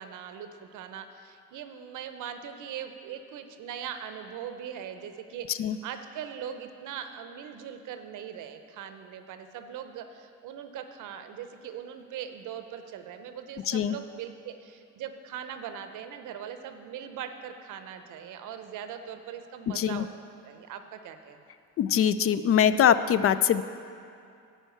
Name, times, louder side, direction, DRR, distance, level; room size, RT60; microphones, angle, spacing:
voice 1, 0.0-20.1 20.5-21.4, right 8 dB, 85° right, 8 dB, 0.7 m, -40 dB
voice 2, 21.8-23.6, left 9 dB, 50° left, 13 dB, 0.4 m, -23 dB
11.5 x 4.5 x 7.9 m, 2.5 s
cardioid pair, 90°, 30 cm